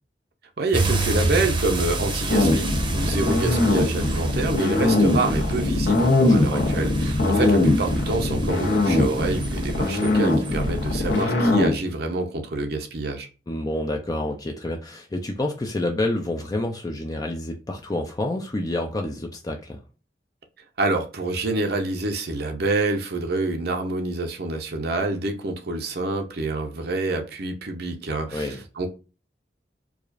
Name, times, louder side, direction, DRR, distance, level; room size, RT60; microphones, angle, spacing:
voice 1, 0.6-13.3 20.8-28.9, right 2 dB, 65° right, 0.7 m, -27 dB
sound 1, 0.7-11.2, right 2 dB, 30° right, 0.7 m, -29 dB
sound 2, 2.3-11.8, left 2 dB, 80° left, 1.1 m, -21 dB
voice 2, 6.4-6.8 13.5-19.8 28.3-28.6, left 1 dB, 20° left, 0.4 m, -28 dB
4.7 x 2.4 x 2.5 m
head